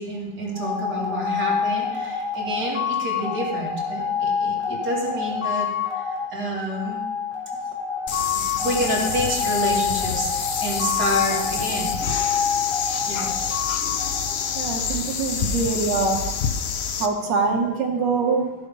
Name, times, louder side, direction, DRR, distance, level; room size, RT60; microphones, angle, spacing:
voice 1, 0.0-5.7 5.9-6.0 6.3-7.0 8.6-11.9 12.8-13.3 14.9-15.0 15.3-15.6, equal, 65° right, -4 dB, 3.1 m, -28 dB
sound 1, 0.5-15.0, left 6 dB, 30° left, 2.3 m, -27 dB
sound 2, 8.1-17.1, left 6 dB, 85° left, 0.5 m, -27 dB
voice 2, 14.5-16.2 17.0-18.5, right 4 dB, 90° right, 0 dB, 1.7 m, -24 dB
15.0 x 5.3 x 5.1 m, 1.2 s
omnidirectional pair, 1.9 m